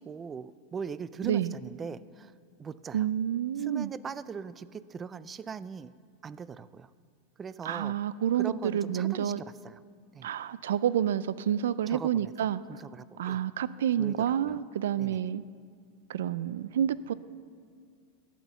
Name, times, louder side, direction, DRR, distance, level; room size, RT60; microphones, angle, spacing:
voice 1, 0.0-2.3 2.6-3.1 3.6-5.9 6.2-6.9 7.4-7.9 8.4-9.8 10.1-10.3 11.9-12.3 12.7-13.4 14.0-14.6 15.0-15.2, right 6 dB, 20° right, 0.3 m, -40 dB
voice 2, 1.2-1.6 2.9-3.9 7.6-9.4 10.2-12.8 13.2-15.4 16.1-17.1, right 10 dB, 85° right, 0.4 m, -29 dB
12.5 x 8.4 x 7.0 m
supercardioid pair, 150°, 0 cm